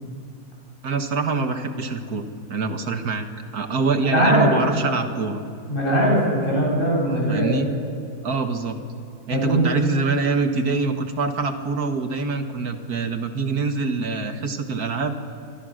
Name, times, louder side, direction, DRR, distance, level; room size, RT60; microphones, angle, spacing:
voice 1, 0.8-3.3 3.5-5.4 7.0-7.7 8.2-8.8 9.3-15.2, right 4 dB, 70° right, 7 dB, 2.0 m, -25 dB
voice 2, 4.1-4.5 5.7-7.6 9.3-9.6, equal, 30° left, -3 dB, 8.2 m, -20 dB
27.5 x 24.5 x 6.5 m, 2.3 s
omnidirectional pair, 1.7 m